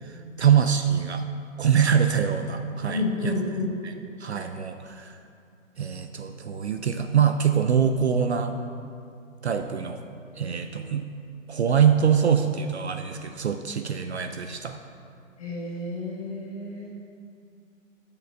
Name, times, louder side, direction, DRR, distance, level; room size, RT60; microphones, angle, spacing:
voice 1, 0.0-1.2 1.6-3.3 3.8-3.9 4.2-5.2 5.8-8.5 9.4-10.0 10.4-11.0 11.5-14.8, right 7 dB, 55° right, 6 dB, 0.5 m, -24 dB
voice 2, 2.9-3.7 10.3-10.6 15.4-16.9, left 2 dB, 25° left, -4 dB, 1.3 m, -31 dB
16.0 x 6.8 x 2.3 m, 2.4 s
hypercardioid pair, 165°, 40 cm